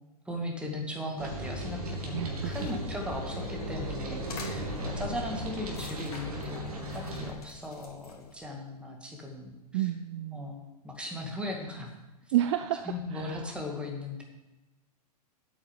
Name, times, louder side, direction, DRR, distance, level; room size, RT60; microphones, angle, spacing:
voice 1, 0.2-9.9 10.3-11.9 12.2-12.3 12.8-14.2, left 1 dB, 5° right, 0 dB, 2.2 m, -38 dB
sound 1, 1.2-7.3, right 1 dB, 65° right, 2.7 m, -37 dB
sound 2, 2.1-8.5, left 3 dB, 65° left, 2.6 m, -44 dB
voice 2, 2.1-2.5 9.7-10.5 12.3-12.9 13.1-13.4, right 13 dB, 45° right, 11 dB, 0.5 m, -30 dB
8.5 x 6.7 x 8.4 m, 1.1 s
figure-of-eight pair, 105°, 20 cm